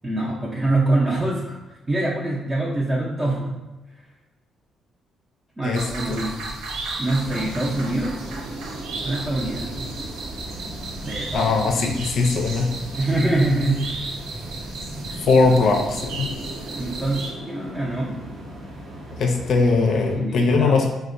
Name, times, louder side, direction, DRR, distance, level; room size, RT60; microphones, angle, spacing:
voice 1, 0.0-1.6 1.9-3.6 5.6-6.4 7.0-8.2 9.0-9.9 11.0-11.5 13.0-14.1 16.7-18.3 20.2-20.8, right 2 dB, 20° right, -6 dB, 0.5 m, -24 dB
voice 2, 5.6-6.2 11.3-12.7 15.3-16.3 19.2-20.9, left 3 dB, 65° left, 2 dB, 0.4 m, -20 dB
sound 1, 5.7-17.3, right 2 dB, 85° right, 0.5 m, -34 dB
sound 2, 7.2-20.2, right 1 dB, 70° right, 0.9 m, -37 dB
4.3 x 2.1 x 2.5 m, 1.1 s
cardioid pair, 90°, 0 cm